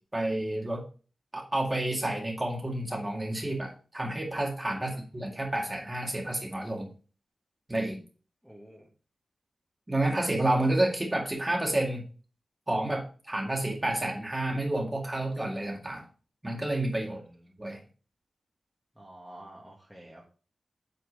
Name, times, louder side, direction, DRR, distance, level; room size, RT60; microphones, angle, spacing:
voice 1, 0.1-0.8 1.3-6.9 7.7-8.0 9.9-12.1 12.7-16.0 16.4-17.2 17.6-17.8, right 1 dB, 15° right, -1 dB, 2.0 m, -30 dB
voice 2, 8.4-8.9 17.1-17.7 18.9-20.2, right 1 dB, ahead, -5 dB, 1.5 m, -50 dB
8.1 x 4.4 x 4.1 m, 0.37 s
wide cardioid pair, 155°, 0 cm